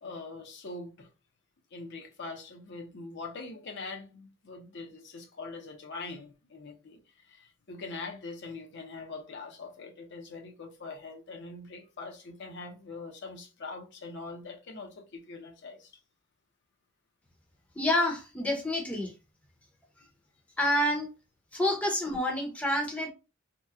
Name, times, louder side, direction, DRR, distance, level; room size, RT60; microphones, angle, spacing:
voice 1, 0.0-1.1 1.7-16.0, left 3 dB, 60° left, 0.7 m, -43 dB
voice 2, 17.8-19.1 20.6-21.1 21.5-23.1, left 1 dB, 5° left, 0.7 m, -28 dB
2.9 x 2.1 x 3.6 m
head